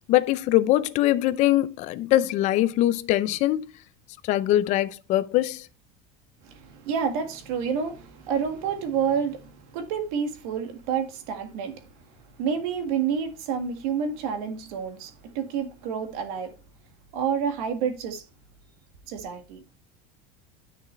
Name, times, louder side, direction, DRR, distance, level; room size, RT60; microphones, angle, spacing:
voice 1, 0.1-3.7 4.3-5.7, left 14 dB, 40° left, 0.6 m, -22 dB
voice 2, 6.4-11.8 12.4-16.5 17.1-18.3 19.1-19.6, right 7 dB, 70° right, 1.8 m, -29 dB
9.8 x 6.4 x 3.2 m
cardioid pair, 175°, 19 cm